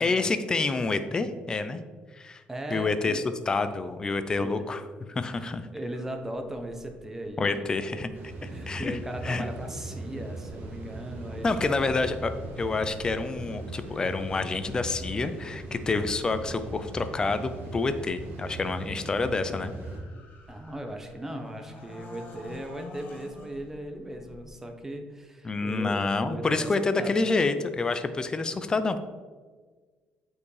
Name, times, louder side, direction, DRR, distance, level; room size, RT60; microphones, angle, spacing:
voice 1, 0.0-1.8 2.1-2.4 2.7-4.8 5.1-5.7 7.4-8.1 8.7-9.0 9.2-9.4 11.4-19.7 25.4-29.0, left 3 dB, 20° left, 10 dB, 0.5 m, -28 dB
voice 2, 2.5-3.3 4.4-4.6 5.3-7.7 7.9-8.0 8.5-11.8 12.3-12.4 20.5-27.2, right 1 dB, 10° right, 5 dB, 0.9 m, -38 dB
sound 1, 5.9-24.5, left 2 dB, 50° left, 1.7 m, -50 dB
sound 2, 8.1-20.0, right 2 dB, 65° right, 1.6 m, -39 dB
8.3 x 4.6 x 4.9 m, 1.4 s
cardioid pair, 145°, 4 cm